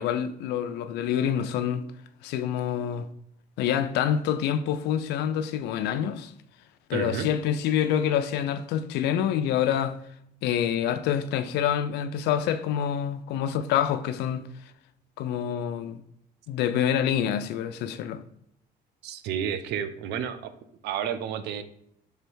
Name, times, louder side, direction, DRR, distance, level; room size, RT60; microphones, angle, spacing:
voice 1, 0.0-1.9 2.2-3.1 3.6-6.3 6.9-10.0 10.4-14.5 15.2-16.0 16.5-18.2, left 9 dB, 85° left, 0.4 m, -27 dB
voice 2, 6.9-7.3 19.0-20.5 20.8-21.6, right 8 dB, 80° right, 0.5 m, -31 dB
3.4 x 3.4 x 4.5 m
cardioid pair, 110°, 17 cm